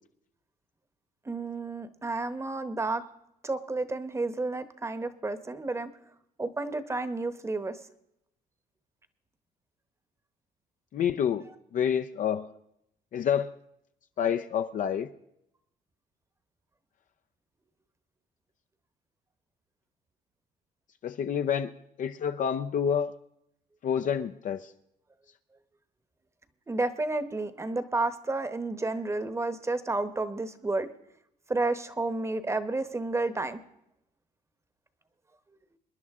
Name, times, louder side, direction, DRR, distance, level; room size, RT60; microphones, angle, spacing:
voice 1, 1.3-3.0 3.4-5.9 6.4-7.8 11.4-11.5 26.7-30.9 31.5-33.6, right 2 dB, 15° right, 12 dB, 1.0 m, -31 dB
voice 2, 10.9-11.5 11.7-12.5 13.1-13.6 14.2-15.1 21.0-21.7 22.0-23.1 23.8-24.7, left 8 dB, 50° left, 8 dB, 0.6 m, -28 dB
26.5 x 10.5 x 3.6 m, 0.79 s
cardioid pair, 110°, 17 cm